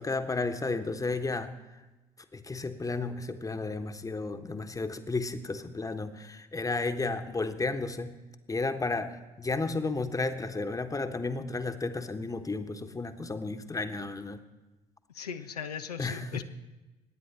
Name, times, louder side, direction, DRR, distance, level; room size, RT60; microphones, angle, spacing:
voice 1, 0.0-1.8 2.3-8.2 8.5-14.4 16.0-16.4, left 3 dB, 15° left, 8 dB, 1.2 m, -33 dB
voice 2, 15.1-16.4, left 7 dB, 85° left, 7 dB, 0.6 m, -38 dB
24.0 x 9.8 x 4.3 m, 1.1 s
figure-of-eight pair, 55°, 20 cm